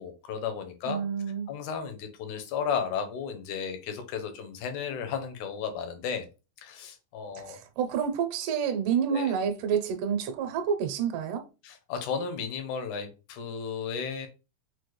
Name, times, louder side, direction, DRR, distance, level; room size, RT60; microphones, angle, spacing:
voice 1, 0.0-1.0 1.5-6.3 6.6-7.6 9.1-9.3 11.6-14.3, left 6 dB, 75° left, 2.0 m, -34 dB
voice 2, 0.8-1.5 7.5-11.5, right 7 dB, 80° right, 2.2 m, -28 dB
6.1 x 2.1 x 3.2 m
omnidirectional pair, 3.9 m